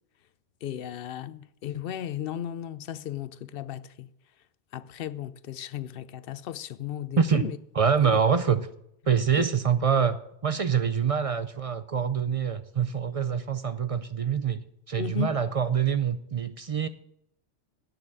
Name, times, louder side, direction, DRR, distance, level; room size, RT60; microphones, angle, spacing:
voice 1, 0.6-4.1 4.7-7.6 8.0-8.2 9.4-9.5 15.0-15.3, left 10 dB, 65° left, 0.7 m, -35 dB
voice 2, 7.2-7.5 7.8-8.7 9.1-10.2 10.4-14.6 14.9-16.9, right 7 dB, 45° right, 0.4 m, -25 dB
9.3 x 6.5 x 8.6 m
omnidirectional pair, 1.2 m